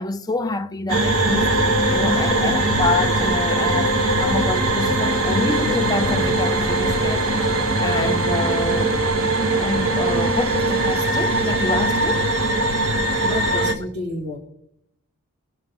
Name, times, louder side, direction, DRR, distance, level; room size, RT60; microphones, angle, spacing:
voice 1, 0.0-1.6 1.9-7.3 7.8-12.3 13.6-13.7, left 2 dB, 15° left, 0.5 m, -27 dB
sound 1, 0.9-13.7, right 2 dB, 65° right, 1.5 m, -20 dB
voice 2, 13.2-14.4, left 1 dB, 80° right, 3.0 m, -30 dB
21.0 x 7.4 x 3.7 m
head